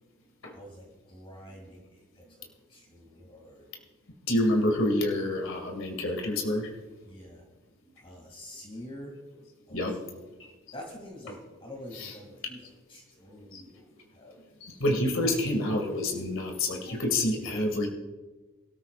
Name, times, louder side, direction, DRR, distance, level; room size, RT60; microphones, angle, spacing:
voice 1, 0.5-3.7 7.1-7.4 8.0-9.1 9.7-10.3 10.7-14.4 17.3-17.6, left 1 dB, 25° left, -1 dB, 2.6 m, -47 dB
voice 2, 4.3-6.7 9.7-9.9 12.0-12.1 13.5-13.6 14.6-17.9, left 1 dB, 70° left, 2 dB, 2.2 m, -27 dB
24.0 x 13.0 x 2.5 m, 1.2 s
head